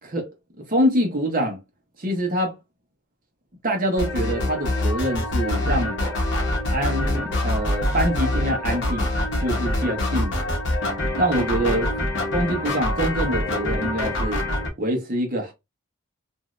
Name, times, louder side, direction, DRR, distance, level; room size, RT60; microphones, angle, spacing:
voice 1, 0.7-1.6 2.0-2.5 3.6-6.0 6.7-9.1 9.4-10.6 11.2-11.9 12.3-14.4 14.8-15.5, right 1 dB, 40° right, 1.0 m, -25 dB
sound 1, 4.0-14.7, left 1 dB, 55° left, 1.0 m, -25 dB
3.1 x 2.6 x 2.5 m
head